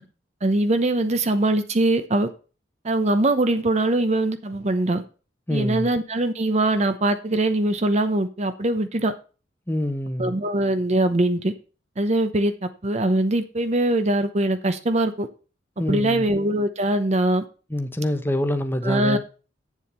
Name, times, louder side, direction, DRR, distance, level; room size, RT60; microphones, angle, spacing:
voice 1, 0.4-2.3 2.8-5.0 5.5-9.1 10.2-11.5 12.0-15.3 15.9-17.4 18.8-19.2, right 1 dB, 35° right, 0.8 m, -22 dB
voice 2, 5.5-5.9 9.7-10.3 15.8-16.3 17.7-19.2, left 1 dB, 10° left, 0.9 m, -25 dB
8.6 x 7.3 x 5.5 m
head